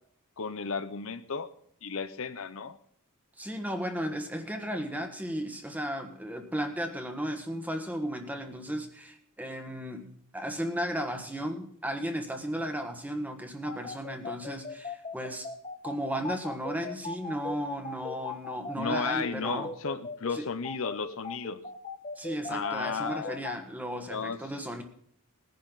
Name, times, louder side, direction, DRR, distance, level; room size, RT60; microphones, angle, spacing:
voice 1, 0.4-1.5 1.8-2.8 18.8-21.6 22.5-23.4 24.1-24.4, left 5 dB, 65° left, 11 dB, 0.8 m, -33 dB
voice 2, 3.4-15.5 15.8-19.7 20.3-20.4 22.2-24.8, equal, 5° right, 6 dB, 1.4 m, -35 dB
sound 1, 13.6-23.5, left 3 dB, 30° left, 1.6 m, -38 dB
19.5 x 10.5 x 4.0 m, 0.64 s
head